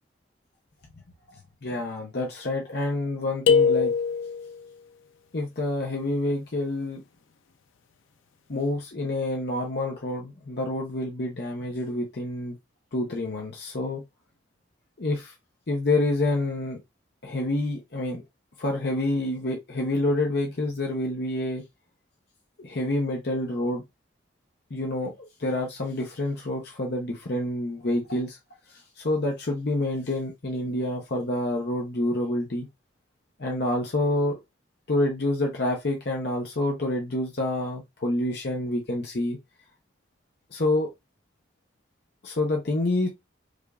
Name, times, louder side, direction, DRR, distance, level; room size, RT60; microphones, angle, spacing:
voice 1, 1.6-3.9 5.3-7.0 8.5-12.6 12.9-14.0 15.0-15.3 15.7-16.8 17.2-18.2 18.6-21.6 22.6-23.8 24.7-28.4 29.0-32.7 33.4-34.4 34.9-39.4 40.5-40.9 42.2-43.1, left 2 dB, 55° left, 0.7 m, -27 dB
sound 1, 3.5-4.6, left 6 dB, 90° left, 0.5 m, -21 dB
5.0 x 2.5 x 2.3 m
head